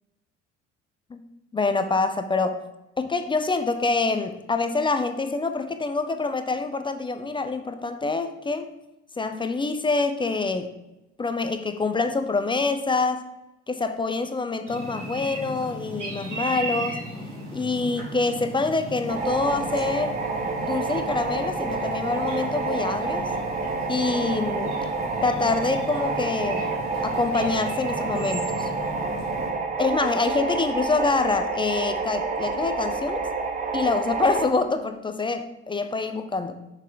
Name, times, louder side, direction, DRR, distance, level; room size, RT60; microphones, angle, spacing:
voice 1, 1.5-2.6 3.0-8.7 9.2-10.7 11.2-13.2 13.7-17.0 17.5-20.2 20.6-23.3 23.9-24.8 25.2-26.7 27.0-28.7 29.8-33.3 33.7-36.6, left 3 dB, 15° left, 9 dB, 0.5 m, -26 dB
sound 1, 14.7-29.5, equal, 80° right, 1.7 m, -36 dB
sound 2, 19.1-34.5, right 4 dB, 20° right, 0.8 m, -29 dB
6.3 x 5.2 x 3.7 m, 0.95 s
figure-of-eight pair, 55°, 35 cm